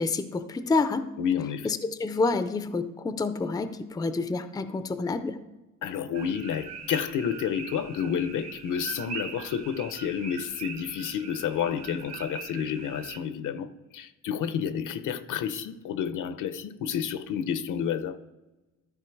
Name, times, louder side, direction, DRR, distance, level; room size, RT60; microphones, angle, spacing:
voice 1, 0.0-1.1 1.6-5.4, left 3 dB, 10° left, 11 dB, 0.4 m, -28 dB
voice 2, 1.2-1.7 5.8-18.2, left 8 dB, 70° left, 13 dB, 0.7 m, -30 dB
sound 1, 6.1-13.2, right 6 dB, 55° right, 0.9 m, -42 dB
13.0 x 4.5 x 4.6 m, 1.1 s
cardioid pair, 130°, 32 cm